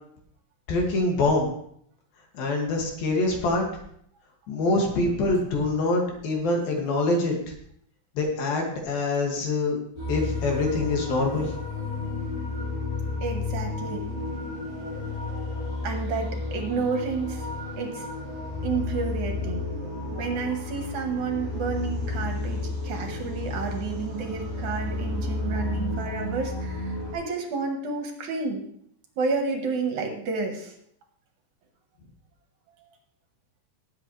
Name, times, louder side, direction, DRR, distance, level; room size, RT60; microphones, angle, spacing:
voice 1, 0.7-1.5 2.3-3.7 4.5-7.4 8.2-9.8 10.1-11.5, left 2 dB, 80° left, 0 dB, 4.1 m, -25 dB
sound 1, 10.0-27.1, left 2 dB, 45° left, 7.1 m, -32 dB
voice 2, 13.2-14.1 15.8-17.5 17.8-18.1 18.6-19.7 20.1-28.6 29.2-30.7, right 4 dB, 60° right, 3 dB, 2.6 m, -30 dB
19.5 x 8.3 x 3.3 m, 0.68 s
omnidirectional pair, 4.1 m